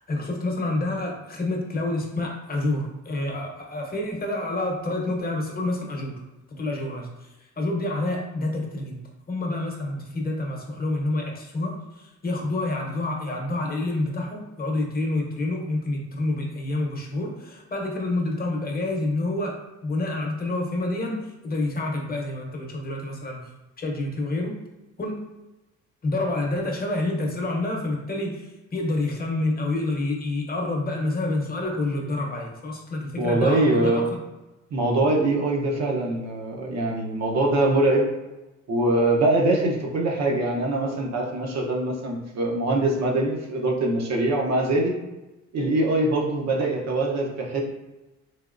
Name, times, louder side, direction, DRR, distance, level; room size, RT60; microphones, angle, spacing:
voice 1, 0.1-6.2 6.5-7.3 7.6-9.0 9.3-23.4 23.8-24.5 25.0-25.2 26.0-34.0, left 2 dB, 30° left, 0 dB, 0.8 m, -28 dB
voice 2, 33.2-34.1 34.7-38.0 38.7-44.9 45.5-47.6, right 2 dB, 60° right, 0 dB, 0.8 m, -23 dB
3.5 x 2.7 x 2.5 m, 1.0 s
cardioid pair, 90°, 30 cm